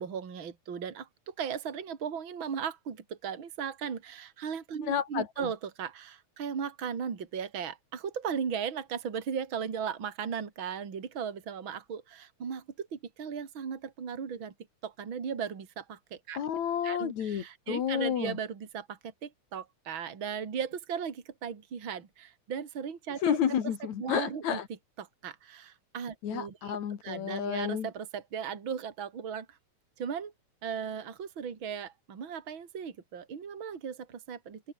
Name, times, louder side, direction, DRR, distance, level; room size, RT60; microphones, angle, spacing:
voice 1, 0.0-14.5 14.8-16.4 16.8-23.3 24.0-24.6 25.0-26.8 27.0-29.6 30.0-30.3 30.6-34.6, right 7 dB, 45° right, 3.2 m, -37 dB
voice 2, 4.8-5.5 16.3-18.4 23.2-24.7 26.2-27.9, left 9 dB, 70° left, 3.3 m, -31 dB
open air
omnidirectional pair, 3.3 m